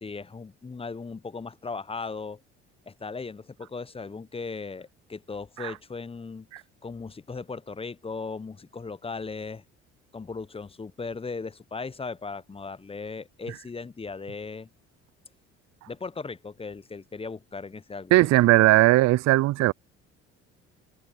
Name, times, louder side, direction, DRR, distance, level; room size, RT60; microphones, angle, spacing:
voice 1, 0.0-2.4 2.9-6.5 6.8-9.6 10.1-14.7 15.9-18.7, left 4 dB, 15° left, 0.9 m, -37 dB
voice 2, 18.1-19.7, right 18 dB, 50° right, 0.5 m, -18 dB
hypercardioid pair, 60°, 34 cm